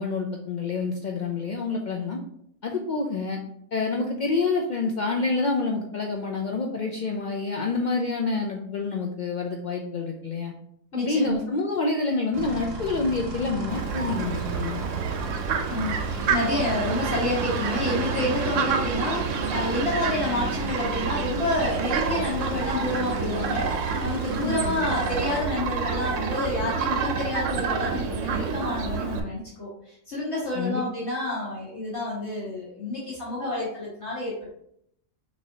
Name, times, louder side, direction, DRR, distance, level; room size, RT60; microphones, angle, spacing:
voice 1, 0.0-2.2 2.6-3.4 3.7-10.5 11.0-14.8 24.4-24.7 30.6-30.8, left 3 dB, 90° left, 0 dB, 0.4 m, -27 dB
voice 2, 10.9-11.4 15.7-16.0 16.3-23.7 24.0-34.5, left 1 dB, 55° left, -8 dB, 1.6 m, -29 dB
sound 1, 12.3-25.4, right 3 dB, 55° right, 0.9 m, -35 dB
Fowl, 13.7-29.2, right 5 dB, 75° right, 0.9 m, -29 dB
6.0 x 2.7 x 2.8 m, 0.73 s
omnidirectional pair, 1.4 m